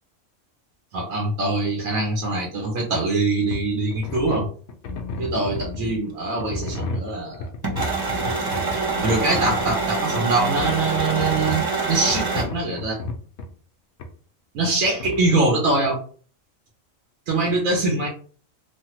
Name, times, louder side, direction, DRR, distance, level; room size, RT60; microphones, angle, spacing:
voice 1, 0.9-4.5 5.2-7.5 9.0-13.0 14.5-16.0 17.3-18.1, right 2 dB, 80° right, -1 dB, 1.2 m, -23 dB
sound 1, 3.5-3.7 3.9-6.0 6.4-9.8 10.6-11.7 12.1-13.5 14.0-14.1 15.0-15.3, left 3 dB, 65° left, 0.8 m, -32 dB
sound 2, 7.6-12.4, right 4 dB, 35° right, 0.4 m, -25 dB
3.2 x 2.2 x 2.9 m, 0.43 s
omnidirectional pair, 1.4 m